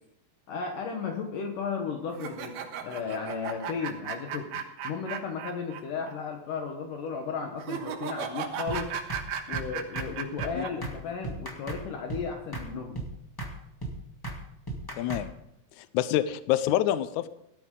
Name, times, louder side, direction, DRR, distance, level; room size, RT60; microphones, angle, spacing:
voice 1, 0.5-2.6 2.8-8.9 9.5-13.0, left 5 dB, 70° left, 3 dB, 2.6 m, -34 dB
sound 1, 2.1-5.8 6.1-6.2 7.6-10.7, right 8 dB, 90° right, 3.2 m, -35 dB
sound 2, 8.7-8.8 9.1-9.2 9.5-9.7 9.9-10.1 10.4-10.5 10.8-11.0 11.2-11.8 12.1-12.2 12.5-12.7 12.9-13.1 13.4-13.5 13.8-13.9 14.2-14.4 14.7-15.2, right 2 dB, 20° left, 0.6 m, -35 dB
voice 2, 15.0-15.3 15.8-17.3, left 12 dB, 85° left, 14 dB, 1.7 m, -26 dB
17.5 x 12.5 x 3.8 m, 0.80 s
omnidirectional pair, 4.2 m